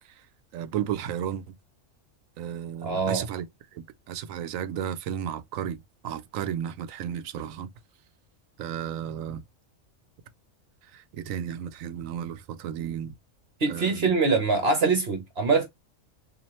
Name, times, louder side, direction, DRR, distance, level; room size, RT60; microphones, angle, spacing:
voice 1, 0.5-1.4 2.4-3.5 3.7-7.7 8.6-9.4 10.9-13.1 13.7-14.1, right 9 dB, 85° right, 1.0 m, -33 dB
voice 2, 2.8-3.3 13.6-15.7, right 4 dB, 55° right, 1.1 m, -24 dB
4.3 x 2.6 x 3.0 m
omnidirectional pair, 1.4 m